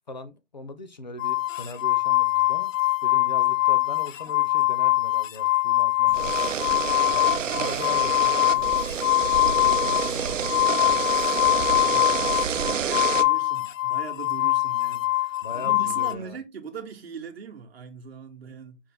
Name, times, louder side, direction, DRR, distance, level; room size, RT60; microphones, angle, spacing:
voice 1, 0.1-2.7 3.0-6.4 7.1-8.7 9.5-10.5 15.4-16.4, left 2 dB, 35° left, 0.5 m, -39 dB
sound 1, 1.2-16.1, left 17 dB, 85° left, 0.6 m, -23 dB
sound 2, 6.1-13.2, right 8 dB, 80° right, 0.6 m, -28 dB
voice 2, 11.0-18.8, right 6 dB, 55° right, 0.9 m, -40 dB
5.3 x 2.5 x 3.4 m
hypercardioid pair, 170°, 38 cm